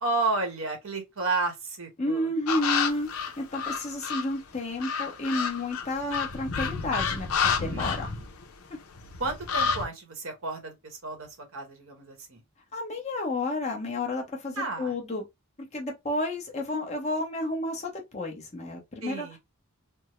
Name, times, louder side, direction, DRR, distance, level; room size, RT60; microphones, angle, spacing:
voice 1, 0.0-2.3 7.7-8.2 9.2-12.4 14.5-15.0 19.0-19.4, right 3 dB, 70° right, 1.1 m, -32 dB
voice 2, 2.0-8.1 12.7-15.2 15.7-19.3, left 1 dB, 30° left, 0.9 m, -31 dB
sound 1, 2.5-4.3 4.8-8.7 8.9-9.8, left 6 dB, 85° left, 0.6 m, -29 dB
3.4 x 2.0 x 3.0 m
head